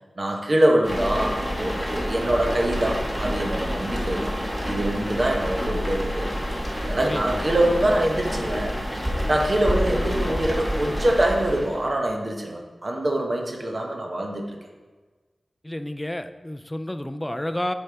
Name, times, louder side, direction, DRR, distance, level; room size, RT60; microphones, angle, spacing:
voice 1, 0.2-4.3 4.6-6.3 6.8-8.8 9.3-14.5, right 1 dB, 40° right, 1 dB, 0.9 m, -24 dB
sound 1, 0.8-11.9, equal, 5° right, 1.2 m, -28 dB
voice 2, 7.0-7.7 15.6-17.7, left 1 dB, 10° left, 9 dB, 0.3 m, -31 dB
8.1 x 5.4 x 3.4 m, 1.3 s
wide cardioid pair, 110°, 0 cm